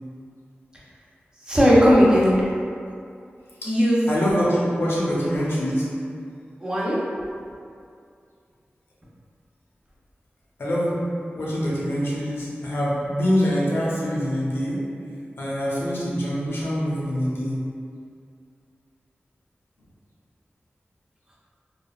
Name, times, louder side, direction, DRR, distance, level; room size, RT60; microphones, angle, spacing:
voice 1, 1.4-2.3 3.6-4.0 6.6-7.0, equal, 20° right, -8 dB, 0.7 m, -17 dB
voice 2, 4.1-5.9 10.6-11.0 11.3-14.8 15.4-17.6, equal, 85° left, -7 dB, 0.7 m, -24 dB
3.3 x 2.1 x 2.3 m, 2.4 s
wide cardioid pair, 90°, 4 cm